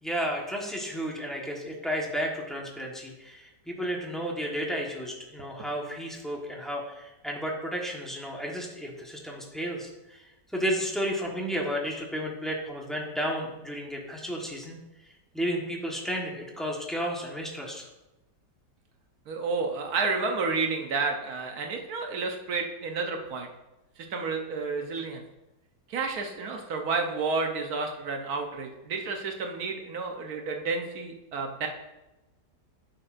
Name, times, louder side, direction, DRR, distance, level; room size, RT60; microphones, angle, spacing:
voice 1, 0.0-10.3 10.5-14.8 15.3-17.9, equal, ahead, -2 dB, 1.0 m, -32 dB
voice 2, 19.3-23.5 24.1-25.2 25.9-31.7, right 4 dB, 65° right, 3 dB, 1.2 m, -30 dB
10.0 x 6.5 x 2.5 m, 1.0 s
omnidirectional pair, 1.8 m